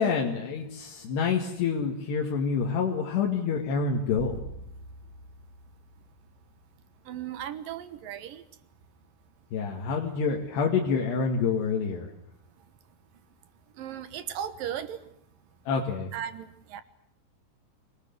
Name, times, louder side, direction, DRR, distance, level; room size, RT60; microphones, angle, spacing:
voice 1, 0.0-4.4 9.5-12.1 15.7-16.1, left 5 dB, 80° left, -1 dB, 4.2 m, -27 dB
sound 1, 4.2-6.8, equal, 25° left, 2.5 m, -44 dB
voice 2, 7.1-8.4 13.8-15.0 16.1-16.8, right 10 dB, 65° right, 12 dB, 2.6 m, -36 dB
26.0 x 19.5 x 9.5 m, 0.72 s
omnidirectional pair, 4.7 m